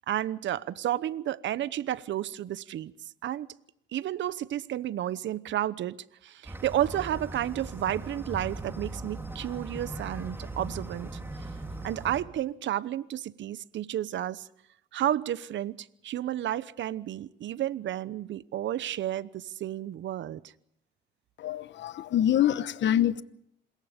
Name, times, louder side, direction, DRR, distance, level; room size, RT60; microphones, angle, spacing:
voice 1, 0.1-2.9 3.2-3.5 3.9-6.0 6.2-11.1 11.8-14.4 14.9-15.8 16.0-20.4, right 12 dB, 70° right, 0.9 m, -31 dB
sound 1, 6.4-12.2, right 2 dB, 10° right, 3.7 m, -39 dB
voice 2, 21.4-23.2, left 11 dB, 65° left, 1.0 m, -25 dB
27.0 x 21.5 x 5.2 m
cardioid pair, 90°, 20 cm